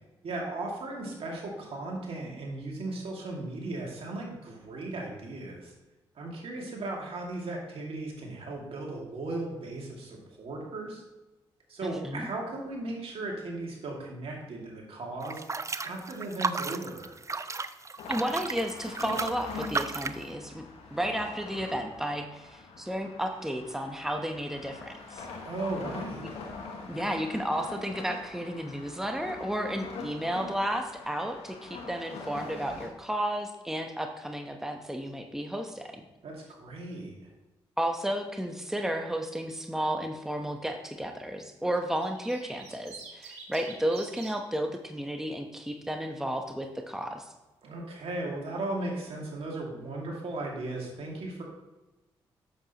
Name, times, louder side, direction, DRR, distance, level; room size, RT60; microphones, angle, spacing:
voice 1, 0.2-5.7 6.2-11.0 11.7-15.4 15.8-17.2 25.4-26.2 36.2-37.1 47.6-51.4, right 2 dB, 65° right, -1 dB, 2.3 m, -36 dB
voice 2, 11.8-12.3 18.1-20.6 20.9-25.3 26.9-36.0 37.8-47.2, right 1 dB, 5° right, 4 dB, 1.0 m, -33 dB
sound 1, 15.2-20.2, right 4 dB, 30° right, 0.5 m, -34 dB
sound 2, 18.0-32.9, left 4 dB, 80° left, 1.3 m, -43 dB
sound 3, 41.8-44.3 45.6-46.0, right 5 dB, 85° right, 1.4 m, -47 dB
8.1 x 7.1 x 3.0 m, 1.1 s
supercardioid pair, 50°, 11 cm